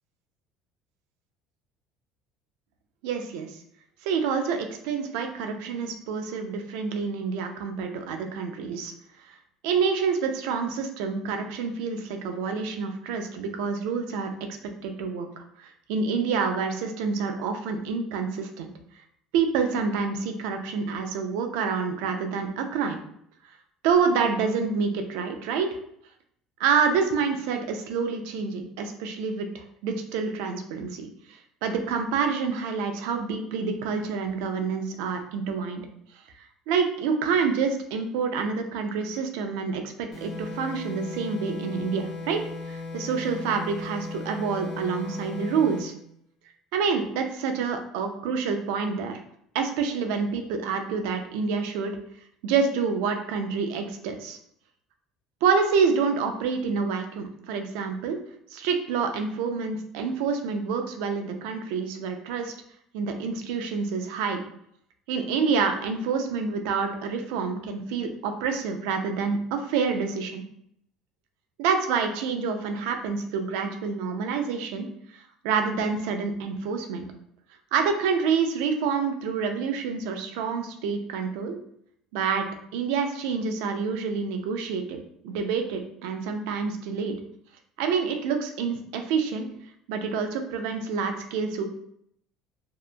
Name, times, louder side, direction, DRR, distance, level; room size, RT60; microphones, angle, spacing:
voice 1, 3.0-3.5 4.0-8.9 9.6-14.3 14.8-18.7 19.3-23.0 23.8-25.7 26.6-31.1 31.6-35.8 36.7-42.4 42.7-45.9 46.7-49.2 49.5-51.9 52.4-54.4 55.4-58.2 58.5-62.5 62.9-64.4 65.1-70.4 71.6-74.9 75.4-77.0 77.7-81.6 82.1-82.5 82.7-85.0 85.2-87.1 87.8-89.5 89.9-91.7, right 5 dB, 85° right, 5 dB, 0.4 m, -27 dB
sound 1, 40.1-45.9, left 4 dB, 60° left, 1.2 m, -37 dB
2.7 x 2.2 x 2.4 m, 0.71 s
cardioid pair, 125°, 0 cm